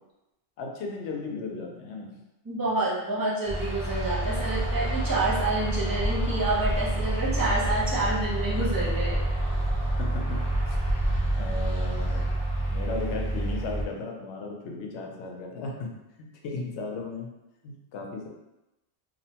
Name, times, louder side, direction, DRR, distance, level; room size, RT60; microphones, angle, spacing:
voice 1, 0.6-2.1 5.4-5.5 10.0-10.4 10.7-10.8 11.1-12.2 12.7-15.9 16.2-17.3 17.6-18.3, left 3 dB, 75° left, 0 dB, 0.8 m, -35 dB
voice 2, 2.4-9.2, right 2 dB, 25° right, -6 dB, 0.4 m, -28 dB
sound 1, 3.5-13.9, right 1 dB, 45° left, 0.3 m, -28 dB
2.7 x 2.1 x 2.8 m, 0.94 s
omnidirectional pair, 1.2 m